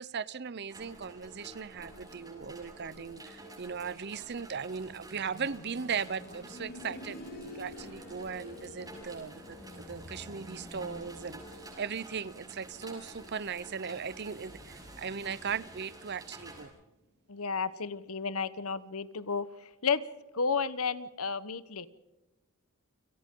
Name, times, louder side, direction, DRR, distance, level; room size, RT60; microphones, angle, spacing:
voice 1, 0.0-7.2 7.5-11.4 11.8-16.7, right 6 dB, 50° right, 19 dB, 0.7 m, -38 dB
sound 1, 0.7-16.7, right 1 dB, 15° right, 6.9 m, -49 dB
sound 2, 5.1-15.9 17.2-17.3, left 1 dB, 45° left, 6.8 m, -50 dB
voice 2, 17.3-19.5 19.8-20.0 20.3-21.9, left 5 dB, 75° left, 15 dB, 1.1 m, -32 dB
30.0 x 26.0 x 3.8 m, 1.1 s
head